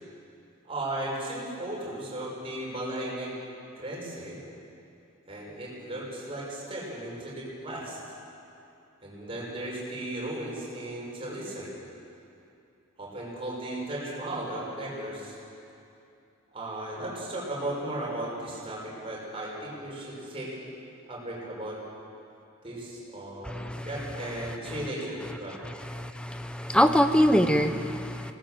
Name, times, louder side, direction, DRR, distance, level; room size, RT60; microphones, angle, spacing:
voice 1, 0.6-3.4 3.7-4.4 5.3-8.0 9.0-11.7 13.0-15.4 16.5-20.6 21.1-21.8 22.6-25.6, right 1 dB, 25° right, -4 dB, 5.6 m, -36 dB
voice 2, 23.5-23.8 26.0-28.3, equal, 5° left, 8 dB, 0.8 m, -24 dB
21.0 x 18.0 x 7.7 m, 2.7 s
head